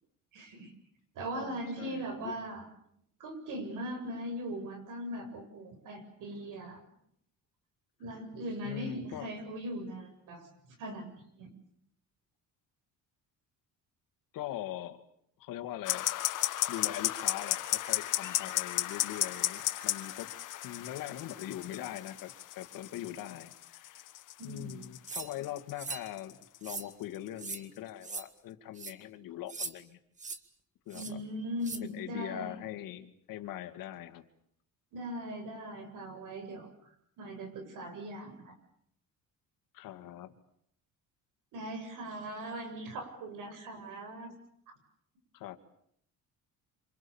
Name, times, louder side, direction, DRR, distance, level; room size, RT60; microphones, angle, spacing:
voice 1, 0.3-0.7 1.1-2.7 3.2-6.8 8.0-10.5 10.8-11.5 24.4-24.7 30.9-32.5 34.9-38.5 41.5-44.3 44.7-44.8, equal, 70° right, 6 dB, 7.9 m, -40 dB
voice 2, 1.3-2.4 8.6-9.3 14.3-15.0 15.4-16.3 16.7-20.3 20.6-24.1 24.4-30.0 30.9-31.2 31.8-34.2 39.7-40.4 45.3-45.6, left 12 dB, 85° left, 8 dB, 2.3 m, -42 dB
sound 1, 15.8-27.9, left 14 dB, 65° left, 1.8 m, -34 dB
sound 2, 25.1-25.3 25.8-26.1 26.6-26.9 27.4-27.6 28.0-28.2 28.8-28.9 29.5-29.7 30.2-30.4 30.9-31.1 31.6-31.8, right 4 dB, 20° right, 1.7 m, -39 dB
27.0 x 27.0 x 7.2 m, 0.72 s
cardioid pair, 145°, 33 cm